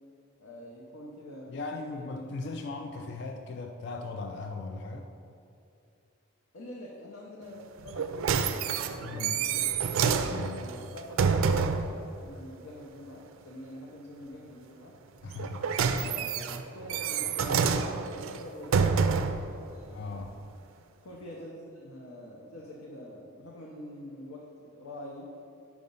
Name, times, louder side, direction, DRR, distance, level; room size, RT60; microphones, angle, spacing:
voice 1, 0.4-2.3 6.5-9.7 10.0-11.9 12.2-15.0 15.9-19.0 19.6-20.4 21.0-25.3, left 1 dB, 75° left, -3 dB, 0.7 m, -45 dB
voice 2, 1.5-5.1 9.0-9.4 10.2-10.7 15.2-15.6 19.8-20.3, left 3 dB, 50° left, 5 dB, 0.3 m, -38 dB
sound 1, 7.9-11.9 15.3-19.5 20.2-20.3, right 6 dB, 70° right, 0.3 m, -28 dB
5.1 x 4.8 x 5.4 m, 2.6 s
head